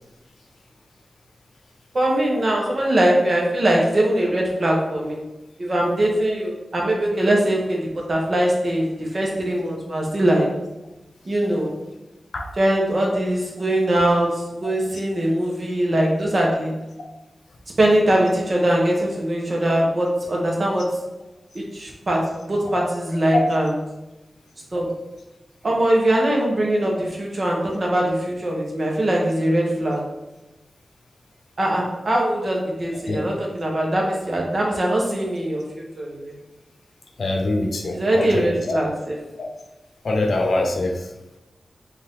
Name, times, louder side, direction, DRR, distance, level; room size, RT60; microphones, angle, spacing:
voice 1, 1.9-5.2 5.6-10.6 11.2-11.8 12.6-16.9 17.8-21.0 21.5-23.8 24.7-24.9 25.6-30.1 31.6-36.3 37.9-39.2, right 1 dB, 45° right, -2 dB, 1.1 m, -21 dB
voice 2, 37.2-38.4 38.7-38.8 40.0-40.9, left 2 dB, 80° left, 2 dB, 0.7 m, -23 dB
4.7 x 2.6 x 3.7 m, 0.99 s
wide cardioid pair, 105°, 0 cm